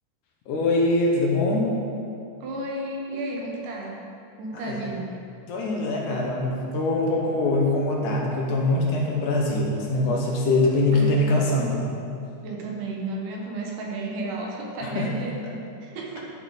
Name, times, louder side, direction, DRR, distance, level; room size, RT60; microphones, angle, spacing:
voice 1, 0.5-1.7 4.5-4.9 5.5-11.9 14.9-15.1, left 2 dB, 70° left, -1 dB, 2.3 m, -23 dB
voice 2, 2.4-4.0 4.4-5.1 10.9-11.2 12.4-16.3, right 2 dB, 70° right, -1 dB, 2.5 m, -33 dB
12.5 x 6.8 x 4.1 m, 2.6 s
omnidirectional pair, 4.1 m